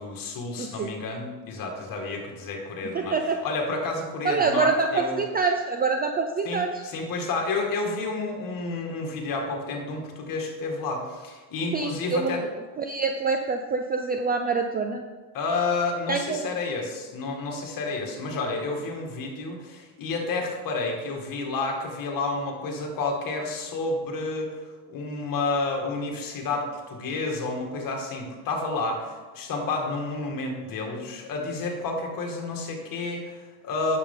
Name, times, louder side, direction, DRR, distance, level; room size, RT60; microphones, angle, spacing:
voice 1, 0.0-5.2 6.4-12.4 15.3-24.6 24.9-34.0, left 3 dB, 45° left, 1 dB, 2.0 m, -30 dB
voice 2, 0.6-0.9 2.9-3.4 4.2-6.7 11.7-12.4 12.8-15.0 16.1-16.5, right 4 dB, 20° right, 5 dB, 0.4 m, -26 dB
9.9 x 6.9 x 3.8 m, 1.3 s
supercardioid pair, 120°, 47 cm